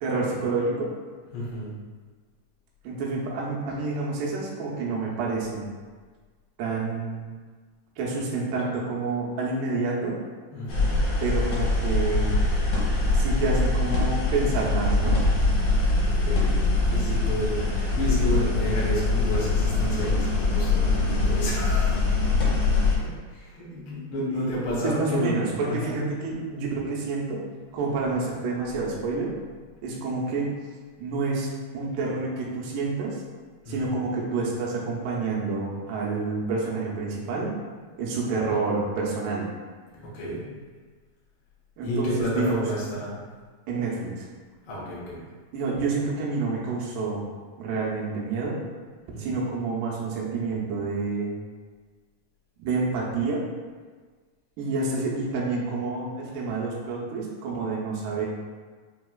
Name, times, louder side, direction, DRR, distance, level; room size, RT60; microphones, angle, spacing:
voice 1, 0.0-0.9 2.8-5.7 6.6-7.3 8.0-10.2 11.2-12.3 13.1-15.2 24.3-27.4 27.7-29.3 29.8-30.5 31.0-31.5 31.7-33.2 33.7-37.5 38.0-39.5 41.8-42.1 42.3-42.7 43.7-44.3 45.5-47.3 47.6-48.6 49.2-51.3 52.6-53.5 54.6-58.2, right 3 dB, 80° right, -3 dB, 2.3 m, -28 dB
voice 2, 1.3-1.7 10.5-11.0 16.0-16.6 16.9-22.0 22.2-22.6 22.8-26.0 27.7-28.2 33.6-34.0 39.9-40.5 41.8-43.1 44.7-45.2 49.1-49.4, equal, 80° left, -7 dB, 1.2 m, -31 dB
sound 1, 10.7-23.0, left 3 dB, 60° left, 1.8 m, -23 dB
5.8 x 2.9 x 2.3 m, 1.5 s
omnidirectional pair, 4.0 m